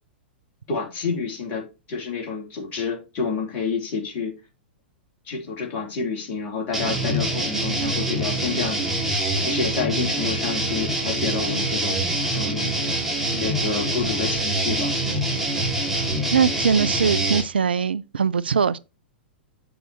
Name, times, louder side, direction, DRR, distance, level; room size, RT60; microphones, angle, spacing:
voice 1, 0.7-4.3 5.2-8.8 9.4-12.0 12.3-12.7 13.3-14.9, left 5 dB, 35° left, 3.4 m, -29 dB
sound 1, 6.7-17.4, right 1 dB, 5° right, 2.7 m, -25 dB
voice 2, 16.3-18.8, right 6 dB, 70° right, 0.4 m, -21 dB
7.4 x 7.0 x 3.1 m
figure-of-eight pair, 100°, 6 cm